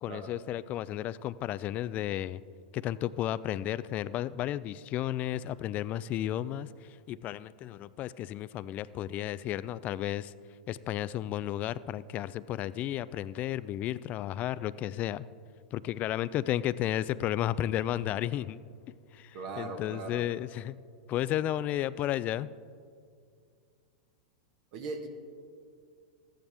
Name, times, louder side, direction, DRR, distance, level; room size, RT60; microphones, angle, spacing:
voice 1, 0.0-2.4 2.7-10.3 10.7-15.2 15.7-18.6 19.1-20.8 21.1-22.5, left 12 dB, 35° left, 18 dB, 0.3 m, -33 dB
voice 2, 19.3-20.2 24.7-25.1, right 3 dB, 55° right, 4 dB, 1.2 m, -39 dB
14.0 x 9.4 x 3.5 m, 2.2 s
hypercardioid pair, 105°, 4 cm